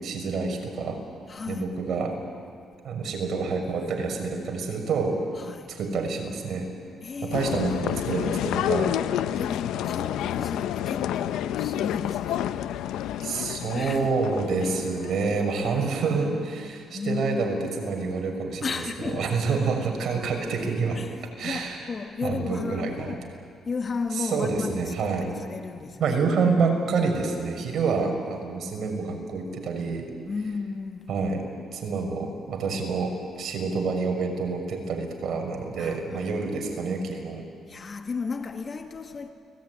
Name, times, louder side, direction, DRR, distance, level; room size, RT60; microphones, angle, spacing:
voice 1, 0.0-1.0 1.5-2.2 2.8-5.2 5.7-6.7 7.2-8.9 13.2-21.0 21.4-21.8 22.2-23.1 24.2-25.3 26.0-30.1 31.1-31.4 31.7-37.4, right 4 dB, 60° right, 6.2 m, -27 dB
voice 2, 1.3-1.7 5.4-5.7 7.0-7.8 9.4-12.8 13.7-14.2 16.9-17.6 18.6-19.3 20.9-23.3 23.6-26.2 28.0-28.1 30.3-31.1 35.8-36.4 37.7-39.3, left 4 dB, 40° left, 2.3 m, -34 dB
sound 1, 7.3-15.4, left 11 dB, 90° left, 0.8 m, -29 dB
30.0 x 20.5 x 9.8 m
cardioid pair, 90°, 0 cm